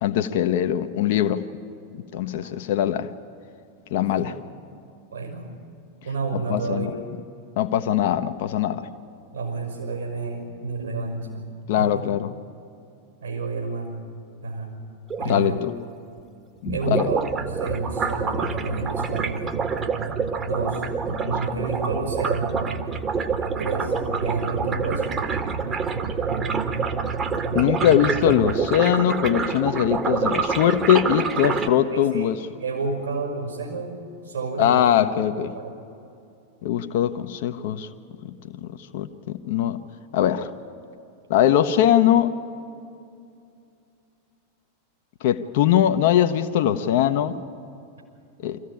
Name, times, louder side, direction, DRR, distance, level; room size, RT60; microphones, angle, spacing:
voice 1, 0.0-1.4 2.1-3.1 3.9-4.3 6.3-6.9 7.6-8.9 11.7-12.3 15.2-15.7 16.6-17.2 21.1-21.6 27.5-32.4 34.6-35.5 36.6-37.9 38.6-38.7 38.9-39.8 40.1-40.5 41.3-42.3 45.2-47.4 48.4-48.6, left 10 dB, 50° left, 8 dB, 0.8 m, -21 dB
voice 2, 2.2-2.6 4.0-4.3 5.1-5.5 6.0-7.0 9.3-11.5 11.8-11.9 13.2-14.0 14.4-14.7 15.2-15.6 16.7-19.5 20.4-20.8 21.2-22.6 23.4-25.1 31.3-31.6 31.9-32.3 32.6-34.0 34.2-34.9 35.5-35.7, right 3 dB, 75° right, 1 dB, 5.4 m, -30 dB
sound 1, 15.1-15.4 16.7-31.7, right 5 dB, 25° right, 1.3 m, -27 dB
sound 2, 17.0-28.6, right 5 dB, 45° right, 0.9 m, -34 dB
24.0 x 15.0 x 9.9 m, 2.5 s
figure-of-eight pair, 90°, 0 cm